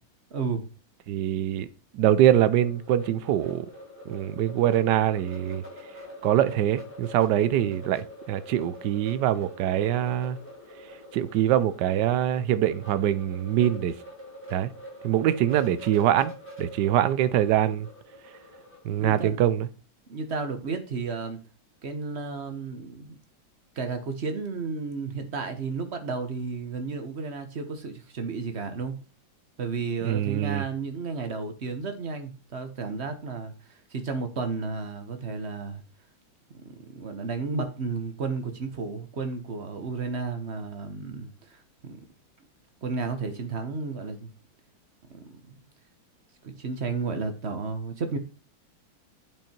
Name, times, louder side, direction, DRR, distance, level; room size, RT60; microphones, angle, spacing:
voice 1, 0.3-0.6 18.9-19.4 20.1-21.4 21.8-23.2 23.7-28.9 29.6-35.8 36.5-42.0 42.8-44.3 45.1-45.6 46.4-48.2, right 4 dB, 40° right, 1.2 m, -33 dB
voice 2, 1.1-1.7 1.9-3.7 4.1-5.6 6.2-10.4 11.1-13.9 14.5-14.7 15.0-16.3 16.6-17.9 18.8-19.7 30.0-30.6, right 11 dB, 70° right, 1.2 m, -24 dB
sound 1, 2.6-19.3, equal, 5° left, 3.1 m, -45 dB
8.9 x 5.5 x 4.4 m
omnidirectional pair, 2.1 m